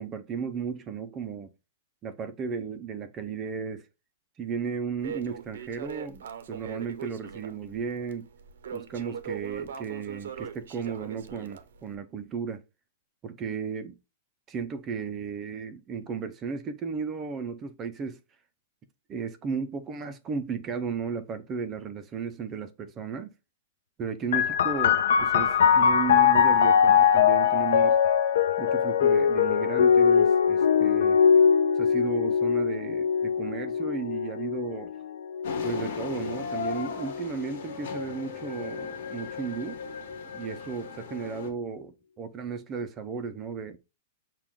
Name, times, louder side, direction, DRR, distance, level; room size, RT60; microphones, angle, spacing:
voice 1, 0.0-1.5 2.0-3.9 4.4-8.3 8.7-12.6 13.2-14.0 14.5-18.2 19.1-23.3 24.0-28.0 28.6-31.2 31.8-34.9 35.6-39.8 40.3-43.8, right 6 dB, 15° right, 0.3 m, -34 dB
Crackle, 5.0-11.9, right 7 dB, 80° right, 0.6 m, -41 dB
sound 1, 24.3-37.6 38.4-39.2, left 7 dB, 85° left, 0.5 m, -22 dB
sound 2, 35.4-41.5, left 5 dB, 55° left, 1.1 m, -37 dB
6.0 x 2.2 x 3.5 m
supercardioid pair, 180°, 0 cm